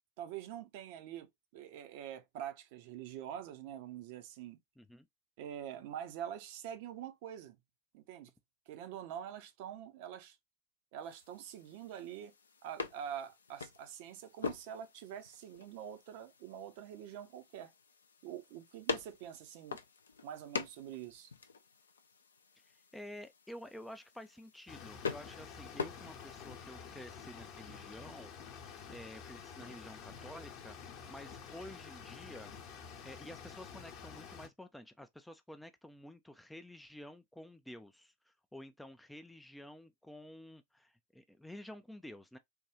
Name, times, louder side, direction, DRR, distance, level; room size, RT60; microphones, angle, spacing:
voice 1, 0.2-4.6 5.4-7.6 7.9-8.3 8.7-10.4 10.9-12.3 12.6-17.7 18.2-19.8 20.2-21.3, right 10 dB, 50° right, 0.6 m, -45 dB
voice 2, 4.8-5.1 22.6-28.3 28.9-32.5 33.0-42.4, left 1 dB, 5° left, 0.3 m, -51 dB
sound 1, 11.0-26.6, left 5 dB, 70° left, 0.4 m, -45 dB
sound 2, 24.7-34.5, left 6 dB, 40° left, 0.8 m, -49 dB
3.6 x 2.3 x 2.9 m
figure-of-eight pair, 90°, 0 cm